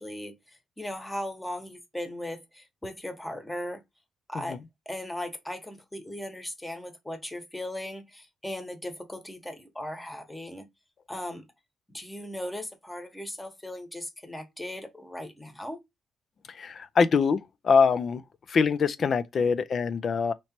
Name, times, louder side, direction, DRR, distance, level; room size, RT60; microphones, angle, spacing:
voice 1, 0.0-3.8 4.3-4.6 4.9-10.7 11.1-11.4 11.9-15.8 19.4-19.5, left 1 dB, 10° left, 1.1 m, -38 dB
voice 2, 16.6-17.4 17.6-18.2 18.5-20.3, left 5 dB, 50° left, 0.5 m, -23 dB
3.1 x 3.0 x 4.3 m
cardioid pair, 90°, 0 cm